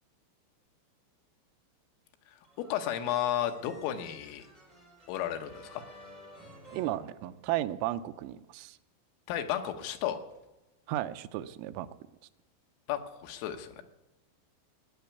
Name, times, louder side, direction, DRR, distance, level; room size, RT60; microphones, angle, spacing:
Funny TV Moment (Alternate Version), 2.4-7.8, equal, 10° right, 4.4 m, -54 dB
voice 1, 2.6-4.5 5.1-5.8 9.3-10.2 12.9-13.8, left 11 dB, 80° left, 6 dB, 3.7 m, -33 dB
voice 2, 6.7-8.8 10.9-11.9, right 14 dB, 85° right, 11 dB, 3.4 m, -34 dB
18.0 x 9.4 x 8.2 m, 1.0 s
omnidirectional pair, 5.9 m